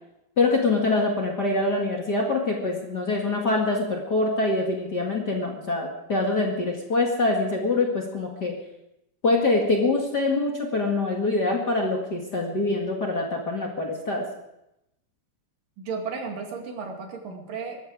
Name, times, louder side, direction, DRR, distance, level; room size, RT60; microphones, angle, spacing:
voice 1, 0.4-8.5 9.2-14.3, left 2 dB, 35° left, 0 dB, 2.2 m, -24 dB
voice 2, 15.8-17.8, right 5 dB, 85° right, 2 dB, 4.1 m, -34 dB
23.0 x 12.5 x 5.0 m, 0.86 s
omnidirectional pair, 3.7 m